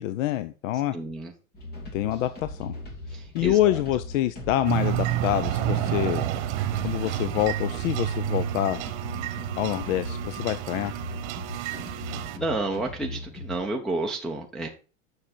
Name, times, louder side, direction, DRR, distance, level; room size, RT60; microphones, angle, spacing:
voice 1, 0.0-0.9 1.9-2.7 3.3-6.2 6.8-8.8 9.6-11.0, left 13 dB, 65° left, 13 dB, 0.7 m, -26 dB
voice 2, 0.9-1.3 3.1-3.8 9.2-9.5 12.1-14.7, right 2 dB, ahead, -1 dB, 0.7 m, -31 dB
sound 1, 1.5-13.7, left 1 dB, 25° left, 2.2 m, -40 dB
sound 2, 4.6-12.4, right 12 dB, 55° right, 1.1 m, -29 dB
7.4 x 6.6 x 4.4 m, 0.36 s
supercardioid pair, 145°, 42 cm